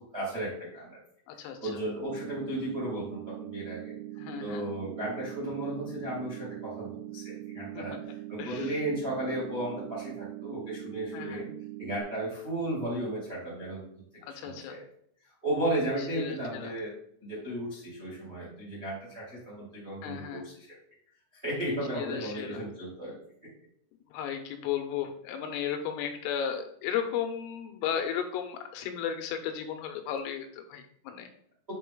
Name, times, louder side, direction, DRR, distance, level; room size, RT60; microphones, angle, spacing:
voice 1, 0.1-1.0 1.6-4.0 4.4-7.9 8.3-11.5 11.8-13.8 14.3-14.8 15.2-16.9 17.2-20.7 21.3-23.1, right 1 dB, 55° right, -6 dB, 0.6 m, -34 dB
voice 2, 1.3-1.7 4.2-4.6 7.7-8.0 8.4-8.8 11.1-11.5 14.2-14.8 16.1-16.7 20.0-20.5 22.0-22.6 24.1-31.3, left 8 dB, 85° left, 6 dB, 3.3 m, -35 dB
sound 1, 2.0-12.0, right 19 dB, 85° right, 3.2 m, -42 dB
7.5 x 3.9 x 3.6 m, 0.65 s
omnidirectional pair, 5.8 m